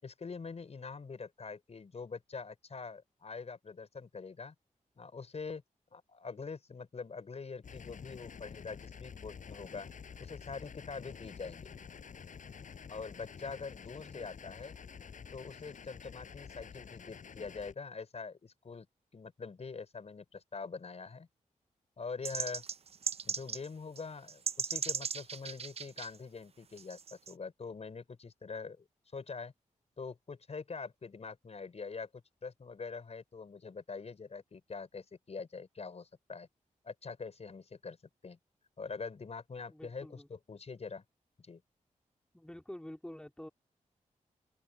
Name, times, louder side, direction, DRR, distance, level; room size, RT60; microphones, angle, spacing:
voice 1, 0.0-4.5 5.0-5.6 5.9-9.9 10.2-11.8 12.9-14.8 15.3-18.9 19.1-21.3 22.0-22.6 23.2-28.8 29.1-29.5 30.0-32.1 32.4-36.5 36.8-38.0 38.2-38.4 38.8-41.0 41.4-41.6, left 4 dB, 50° left, 5.7 m, -44 dB
sound 1, 7.6-17.7, left 6 dB, 70° left, 5.1 m, -49 dB
voice 2, 13.9-14.5 39.7-40.3 42.3-43.5, left 1 dB, 5° left, 3.6 m, -48 dB
sound 2, 22.2-23.7 24.0-24.1 24.3-26.1 26.8-27.3, right 6 dB, 50° right, 0.5 m, -37 dB
open air
wide cardioid pair, 95°, 14 cm